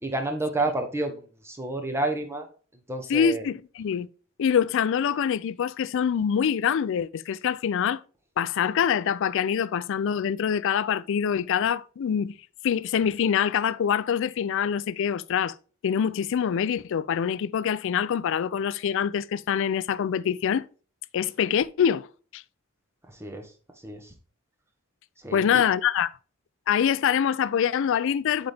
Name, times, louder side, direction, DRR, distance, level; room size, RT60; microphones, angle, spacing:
voice 1, 0.0-2.5 2.9-3.5 23.1-23.5 23.8-24.1 25.2-25.6, right 2 dB, 10° right, 0.9 m, -30 dB
voice 2, 3.1-4.1 4.4-8.0 8.4-12.3 12.6-15.5 15.8-20.6 21.1-22.1 22.3-22.4 25.3-26.1 26.7-28.5, left 8 dB, 65° left, 0.3 m, -25 dB
7.8 x 4.1 x 3.4 m
head